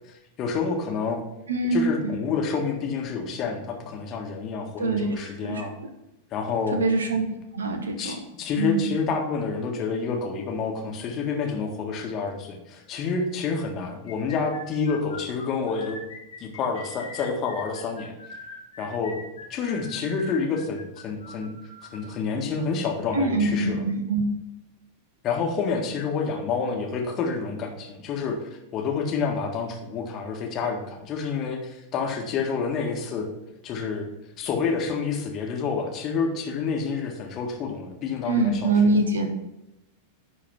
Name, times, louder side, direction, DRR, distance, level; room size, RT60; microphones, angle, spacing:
voice 1, 0.4-1.2 1.7-5.7 6.3-6.8 8.0-16.0 16.4-18.1 18.8-19.2 19.5-21.5 21.8-23.8 25.2-33.3 33.6-34.1 34.4-39.0, left 5 dB, 35° left, 2 dB, 1.7 m, -28 dB
voice 2, 1.5-2.2 4.8-5.1 5.4-5.6 6.7-7.3 7.5-8.2 8.6-8.9 23.1-24.3 38.3-39.3, right 2 dB, 70° right, 6 dB, 1.2 m, -24 dB
sound 1, 14.1-22.1, left 3 dB, 70° left, 1.6 m, -42 dB
10.5 x 4.1 x 5.9 m, 0.90 s
figure-of-eight pair, 90°, 0 cm